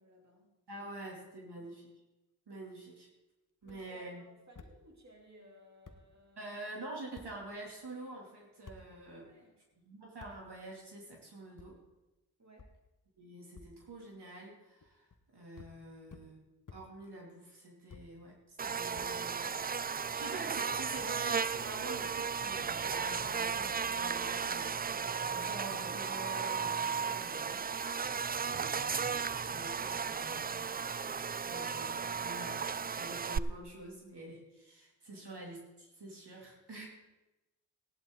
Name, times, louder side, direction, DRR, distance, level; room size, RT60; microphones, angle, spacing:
voice 1, 0.0-0.9 1.3-1.7 3.6-6.5 9.1-9.6 12.4-12.7 35.1-35.3, right 1 dB, 40° right, 1 dB, 3.0 m, -60 dB
voice 2, 0.7-1.9 2.5-3.1 3.6-4.2 6.4-9.3 9.8-11.8 13.2-16.4 16.7-19.5 20.1-27.7 28.4-30.8 31.5-36.9, right 2 dB, 65° right, -1 dB, 2.9 m, -47 dB
sound 1, 3.6-3.8 4.5-4.7 5.5-5.6 5.8-6.0 7.1-7.3 8.6-8.8 10.2-10.3 11.6-11.7 12.6-12.7 13.5-13.7 14.8-15.2 15.5-15.7 16.1-16.3 16.7-16.8 17.9-18.1 18.9-19.6, left 4 dB, 45° left, 1.1 m, -52 dB
Buzz, 18.6-33.4, right 6 dB, 25° right, 0.3 m, -35 dB
16.0 x 11.0 x 3.9 m, 1.0 s
cardioid pair, 40°, 42 cm